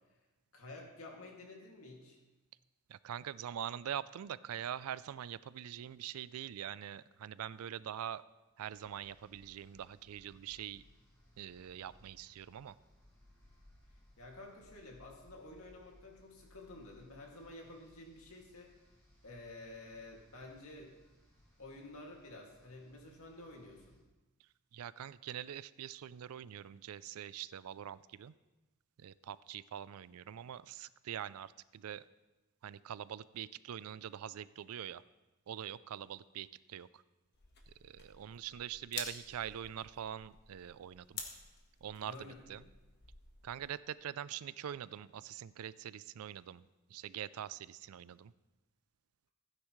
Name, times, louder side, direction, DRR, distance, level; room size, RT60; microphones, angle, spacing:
voice 1, 0.5-2.2 14.2-18.7 19.2-20.9 21.6-24.0 42.0-42.6, left 2 dB, 80° left, -1 dB, 2.3 m, -51 dB
voice 2, 2.9-8.2 8.6-10.8 11.4-12.7 24.7-28.3 29.0-32.0 32.6-35.0 35.5-37.0 37.7-41.2 41.8-42.6 43.4-48.3, right 10 dB, 85° right, 18 dB, 0.4 m, -44 dB
sound 1, 8.7-24.0, left 1 dB, 10° left, 3.0 m, -65 dB
sound 2, 37.3-43.7, left 5 dB, 50° left, 1.3 m, -50 dB
15.5 x 9.7 x 3.1 m, 1.1 s
head